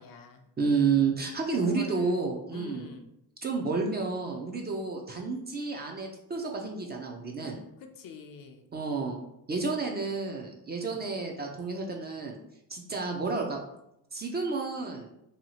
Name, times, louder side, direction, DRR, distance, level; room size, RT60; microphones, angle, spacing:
voice 1, 0.0-0.5 1.5-2.2 2.5-3.1 7.8-8.7 10.8-11.1, left 5 dB, 60° left, 5 dB, 0.5 m, -45 dB
voice 2, 0.6-2.9 3.4-7.6 8.7-9.2 9.5-12.4 12.7-13.6 14.1-15.1, right 4 dB, 25° right, 1 dB, 0.4 m, -30 dB
2.8 x 2.3 x 2.8 m, 0.82 s
cardioid pair, 105°, 39 cm